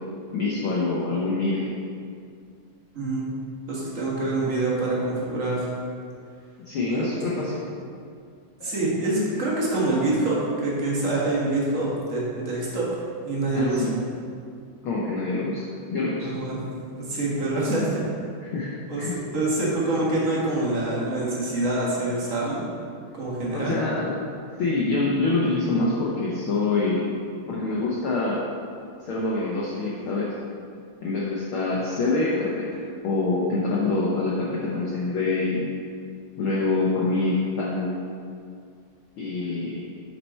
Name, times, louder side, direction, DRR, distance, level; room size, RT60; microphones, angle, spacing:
voice 1, 0.3-1.7 6.7-7.6 8.6-8.7 13.5-13.9 14.8-16.3 18.4-18.7 19.0-19.1 23.5-24.1 24.6-27.1 27.5-28.4 29.1-30.3 31.0-35.7 36.4-37.9 39.2-39.8, left 3 dB, 70° left, -5 dB, 1.3 m, -25 dB
voice 2, 3.7-5.7 6.9-7.1 8.6-12.9 13.2-13.9 16.2-16.6 16.9-17.9 18.9-22.6 23.2-23.8, right 2 dB, 40° right, -5 dB, 1.2 m, -26 dB
7.4 x 5.6 x 4.3 m, 2.3 s
omnidirectional pair, 3.3 m